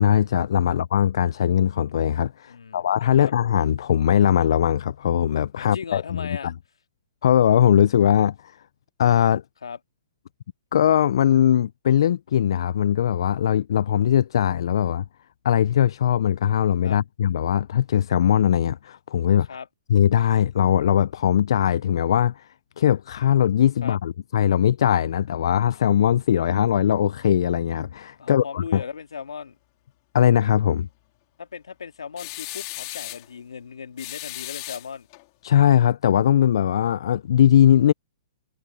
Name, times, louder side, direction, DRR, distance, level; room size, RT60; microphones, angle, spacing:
voice 1, 0.0-6.5 7.2-8.6 9.0-9.4 10.7-15.0 15.4-19.5 19.9-22.5 22.8-28.8 30.1-30.9 35.4-37.9, left 10 dB, 65° left, 0.4 m, -20 dB
voice 2, 2.5-2.9 3.2-3.3 5.6-6.5 9.6-9.8 16.8-17.0 19.5-19.7 23.8-24.0 28.2-29.6 31.4-35.1, left 6 dB, 85° left, 2.1 m, -37 dB
sound 1, 32.2-33.3 34.0-35.2, left 23 dB, 40° left, 2.2 m, -36 dB
hypercardioid pair, 140°, 3 cm